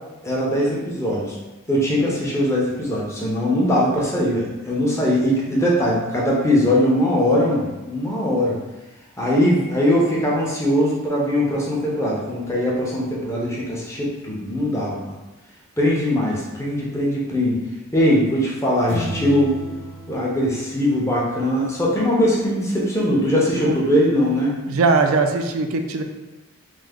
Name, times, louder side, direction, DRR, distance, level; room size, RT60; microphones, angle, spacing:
voice 1, 0.2-1.4 1.7-8.6 9.2-15.1 15.8-17.6 17.9-19.6 20.1-24.5, equal, 15° left, -4 dB, 0.6 m, -21 dB
sound 1, 18.9-21.5, equal, 60° left, 0.6 m, -34 dB
voice 2, 24.7-26.0, right 4 dB, 80° right, 5 dB, 0.3 m, -20 dB
3.2 x 2.0 x 3.5 m, 1.1 s
head